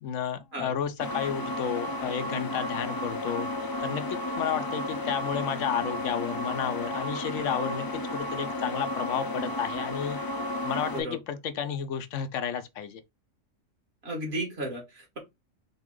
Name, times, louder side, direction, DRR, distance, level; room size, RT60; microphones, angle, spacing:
voice 1, 0.0-3.5 3.8-10.2 10.6-13.0, left 8 dB, 75° left, 1.0 m, -32 dB
sound 1, 1.0-11.0, left 1 dB, 25° left, 0.5 m, -33 dB
voice 2, 14.0-15.2, right 1 dB, 55° right, 2.0 m, -34 dB
3.9 x 2.9 x 3.7 m
omnidirectional pair, 1.3 m